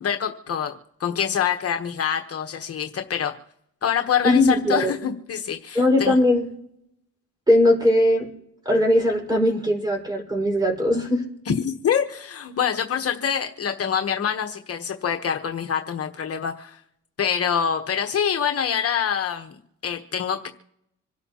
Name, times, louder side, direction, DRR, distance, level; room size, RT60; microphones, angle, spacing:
voice 1, 0.0-3.3 3.8-6.1 11.5-16.8 17.2-19.6 19.8-20.5, left 8 dB, 50° left, 5 dB, 1.2 m, -25 dB
voice 2, 4.2-4.9 5.8-6.5 7.5-8.3 8.7-11.2, left 1 dB, 15° right, 0 dB, 5.1 m, -19 dB
26.5 x 12.0 x 3.0 m, 0.76 s
cardioid pair, 90°, 30 cm